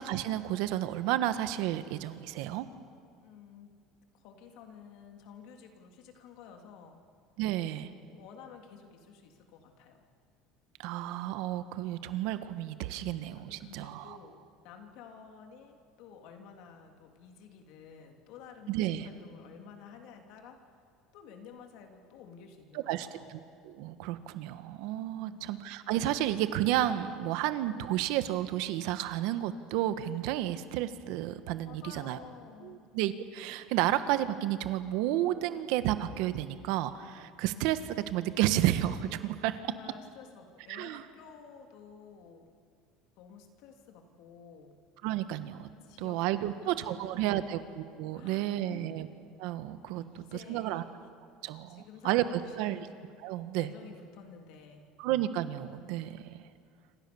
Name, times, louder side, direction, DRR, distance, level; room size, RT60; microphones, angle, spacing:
voice 1, 0.0-2.7 7.4-7.9 10.8-14.2 18.7-19.1 22.7-32.2 32.6-39.6 40.7-41.0 45.0-45.7 46.0-49.1 49.4-50.2 50.5-50.8 51.4-52.9 53.2-53.7 55.0-56.4, right 13 dB, 70° right, 11 dB, 1.4 m, -31 dB
voice 2, 3.2-3.7 4.1-7.0 8.1-10.0 13.5-20.8 21.1-23.3 25.1-25.5 31.6-32.9 39.3-42.5 43.2-44.8 45.8-47.6 48.1-49.0 49.9-50.9 51.7-52.9 53.6-54.9, left 6 dB, 60° left, 4 dB, 3.3 m, -52 dB
27.5 x 26.5 x 7.2 m, 2.3 s
cardioid pair, 155°, 0 cm